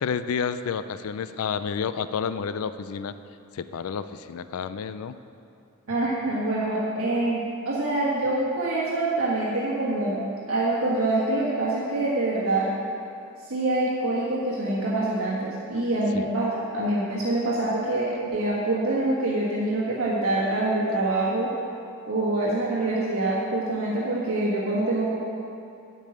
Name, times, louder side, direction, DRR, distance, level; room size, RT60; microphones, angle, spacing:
voice 1, 0.0-3.1 3.5-5.2 16.1-16.3, left 6 dB, 70° left, 12 dB, 0.4 m, -30 dB
voice 2, 5.9-10.2 10.5-12.7 13.4-21.5 22.1-25.2, right 2 dB, 65° right, -6 dB, 1.5 m, -25 dB
10.0 x 5.5 x 7.8 m, 2.6 s
head